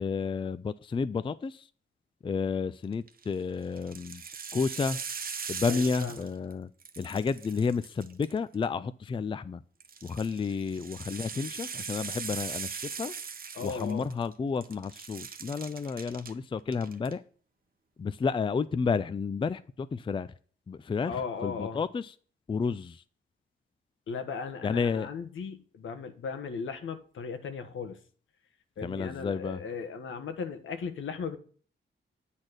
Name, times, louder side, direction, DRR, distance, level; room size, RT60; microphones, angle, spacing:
voice 1, 0.0-1.6 2.2-4.2 4.5-5.0 5.5-6.7 7.0-9.6 10.0-13.1 13.6-17.2 18.0-20.3 20.7-22.1 22.5-23.0 24.6-25.1 28.8-29.6, left 5 dB, 25° left, 0.4 m, -31 dB
sound 1, 2.9-3.3 3.8-6.5 6.8-8.6 9.8-14.3 14.6-16.3 16.7-17.1, right 6 dB, 45° right, 0.9 m, -40 dB
voice 2, 5.7-6.3 13.5-14.1 21.1-21.8 24.1-28.0 28.8-31.4, left 5 dB, 80° left, 1.2 m, -37 dB
8.9 x 4.2 x 6.5 m
cardioid pair, 100°, 20 cm